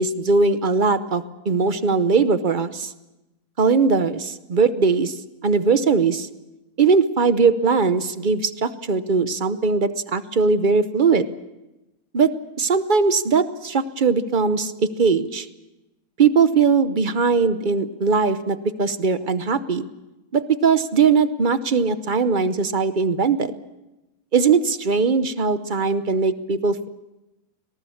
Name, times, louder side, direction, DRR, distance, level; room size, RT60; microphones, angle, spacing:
voice 1, 0.0-2.9 3.6-5.1 5.4-6.3 6.8-11.3 12.1-12.3 12.6-15.5 16.2-19.9 20.3-23.5 24.3-26.9, right 5 dB, 40° right, 12 dB, 0.9 m, -20 dB
25.5 x 18.5 x 7.1 m, 1.0 s
omnidirectional pair, 1.6 m